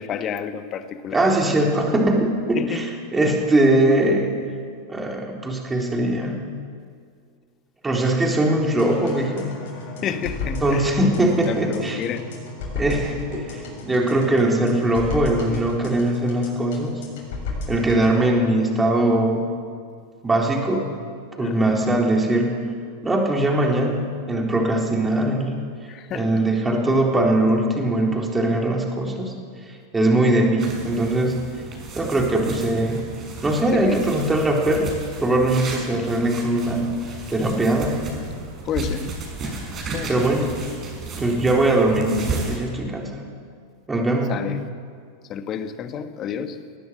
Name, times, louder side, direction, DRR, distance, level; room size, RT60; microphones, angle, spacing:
voice 1, 0.0-1.5 2.5-2.8 10.0-10.9 11.4-12.3 21.4-21.8 25.9-26.4 33.7-34.0 38.6-39.1 39.9-40.3 44.3-44.6 45.3-46.6, left 8 dB, 30° left, 10 dB, 1.5 m, -30 dB
voice 2, 1.1-4.3 4.9-6.4 7.8-9.5 10.6-12.0 12.7-16.9 17.7-19.5 20.2-20.9 21.4-22.6 23.0-25.6 26.1-29.3 29.9-31.4 32.0-33.0 33.4-34.9 35.2-36.9 37.3-37.9 40.1-40.5 41.2-43.2 43.9-44.3, right 1 dB, 10° right, 0 dB, 3.9 m, -21 dB
sound 1, 8.8-18.2, left 3 dB, 50° left, 7.0 m, -34 dB
sound 2, 30.6-42.6, right 3 dB, 25° right, 6.0 m, -34 dB
21.0 x 18.5 x 7.6 m, 2.1 s
figure-of-eight pair, 90°, 0 cm